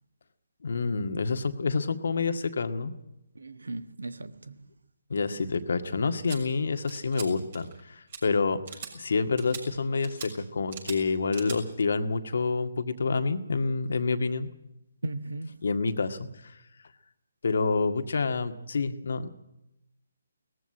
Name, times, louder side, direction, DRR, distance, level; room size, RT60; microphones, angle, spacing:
voice 1, 0.6-2.9 5.1-8.6 8.9-14.5 15.6-16.5 17.4-19.3, left 4 dB, 65° left, 1.9 m, -28 dB
voice 2, 3.3-4.7 15.0-15.7, right 2 dB, 80° right, 1.4 m, -37 dB
sound 1, 6.3-6.4 6.9-7.3 7.5-7.8 8.1-8.2 8.7-8.9 9.4-9.6 10.0-10.3 10.7-11.0 11.3-11.6, right 7 dB, 50° right, 6.7 m, -40 dB
19.0 x 14.5 x 10.0 m
figure-of-eight pair, 150°, 0 cm